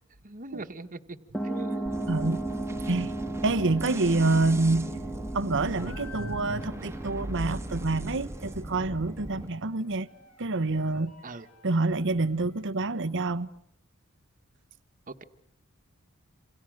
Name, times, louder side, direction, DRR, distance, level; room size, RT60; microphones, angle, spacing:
voice 1, 0.2-1.2 1.4-2.0 11.2-11.5 15.1-15.2, right 2 dB, 40° right, 1.7 m, -41 dB
sound 1, 1.3-9.5, right 2 dB, 5° left, 2.0 m, -36 dB
sound 2, 1.9-9.5, right 1 dB, 10° right, 1.8 m, -40 dB
voice 2, 2.1-2.4 2.9-3.1 3.4-5.0 5.3-10.1 10.4-11.1 11.6-13.5, right 2 dB, 60° right, 1.2 m, -27 dB
sound 3, 5.7-12.8, left 5 dB, 80° left, 5.6 m, -53 dB
28.5 x 27.5 x 6.6 m
head